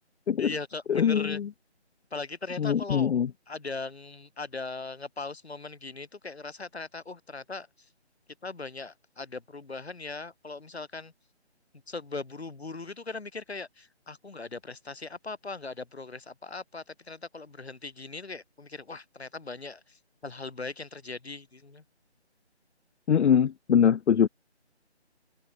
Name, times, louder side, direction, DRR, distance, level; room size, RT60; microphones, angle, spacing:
voice 1, 0.4-1.4 2.1-7.7 8.4-11.1 11.9-21.8, left 3 dB, 70° left, 2.5 m, -39 dB
voice 2, 0.9-1.5 2.6-3.3 23.1-24.3, left 8 dB, 90° left, 0.5 m, -23 dB
figure-of-eight pair, 175°, 34 cm